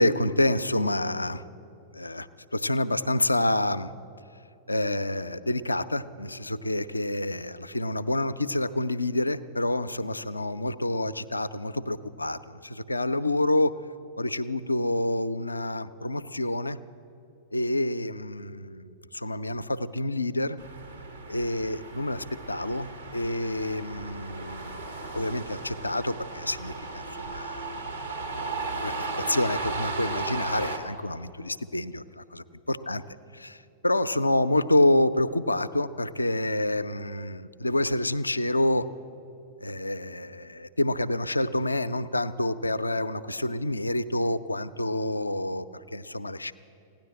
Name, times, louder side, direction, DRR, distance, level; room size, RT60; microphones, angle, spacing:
voice 1, 0.0-1.4 1.9-2.3 2.5-3.9 4.7-13.7 14.2-16.8 17.5-20.6 21.3-24.8 25.1-27.7 28.7-32.2 32.7-33.0 33.3-33.6 33.8-38.9 39.6-46.5, left 1 dB, 85° left, 12 dB, 0.4 m, -28 dB
Street noise cars and a tram, 20.6-30.8, right 3 dB, 85° right, 1.6 m, -35 dB
16.5 x 10.5 x 7.5 m, 2.8 s
figure-of-eight pair, 95°, 0 cm